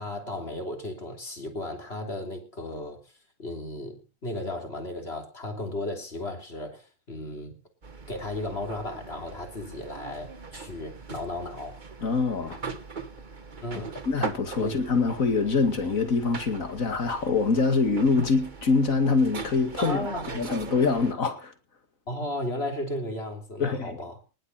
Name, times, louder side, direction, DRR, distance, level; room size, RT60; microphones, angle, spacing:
voice 1, 0.0-3.0 3.4-7.6 8.1-11.8 13.6-14.0 14.6-14.9 19.8-20.5 22.1-24.2, left 1 dB, 50° left, 3.5 m, -35 dB
sound 1, 7.8-21.1, right 4 dB, 35° right, 1.5 m, -40 dB
voice 2, 12.0-12.6 14.1-20.1 20.3-21.5 23.6-24.0, left 4 dB, 80° left, 2.6 m, -24 dB
19.5 x 8.1 x 5.8 m
omnidirectional pair, 1.4 m